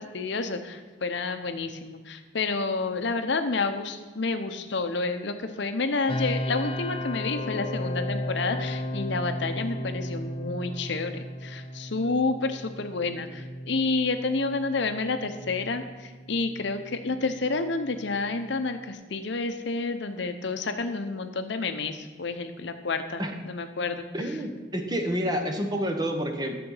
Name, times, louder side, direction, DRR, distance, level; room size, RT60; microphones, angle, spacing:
voice 1, 0.0-24.0, left 3 dB, 60° left, 8 dB, 0.7 m, -29 dB
sound 1, 6.1-18.9, left 1 dB, 25° left, 0.6 m, -35 dB
voice 2, 24.1-26.6, equal, 20° right, 5 dB, 0.9 m, -29 dB
11.0 x 7.0 x 5.5 m, 1.4 s
head